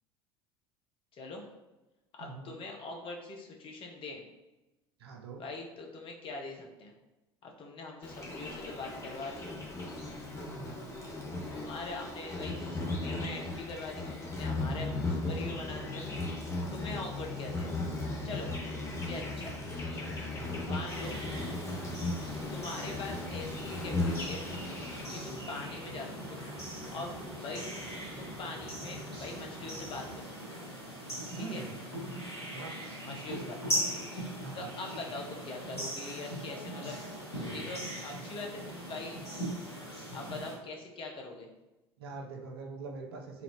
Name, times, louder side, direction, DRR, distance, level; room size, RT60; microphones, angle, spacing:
voice 1, 1.1-1.4 2.2-4.2 5.4-6.9 7.4-9.5 11.5-16.1 16.7-17.8 18.2-18.5 19.0-19.6 20.7-21.2 22.5-24.5 25.1-26.4 26.9-27.6 28.1-30.6 31.4-31.7 33.0-34.0 34.5-37.0 37.5-39.2 40.1-41.5, left 3 dB, 40° left, 1 dB, 0.9 m, -42 dB
voice 2, 2.2-2.5 5.0-5.5 10.5-11.0 16.7-17.1 20.3-20.8 21.8-22.2 25.0-25.4 31.3-31.7 32.5-32.8 34.4-34.8 42.0-43.4, right 4 dB, 75° right, 3 dB, 0.7 m, -44 dB
Insect, 8.0-25.0, left 2 dB, 20° left, 1.3 m, -37 dB
sound 1, 20.9-40.5, right 1 dB, 90° left, 1.4 m, -40 dB
sound 2, 22.2-30.2, equal, 25° right, 1.2 m, -46 dB
4.0 x 3.7 x 2.9 m, 1.0 s
figure-of-eight pair, 70°, 13 cm